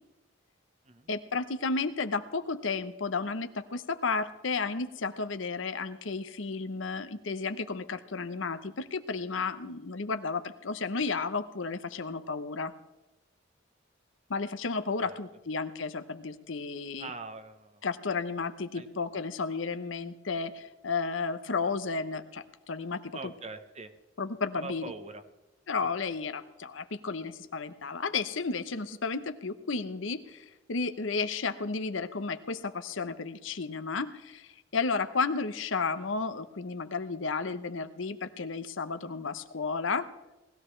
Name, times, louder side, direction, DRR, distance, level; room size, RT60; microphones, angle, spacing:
voice 1, 1.1-12.7 14.3-17.1 17.8-23.3 24.2-24.9 25.7-40.1, left 4 dB, 85° left, 10 dB, 0.8 m, -33 dB
voice 2, 17.0-17.8 18.7-18.9 23.1-23.9 24.5-25.2 25.8-26.1, right 3 dB, 35° right, 9 dB, 1.0 m, -43 dB
20.0 x 14.5 x 3.3 m, 1.0 s
head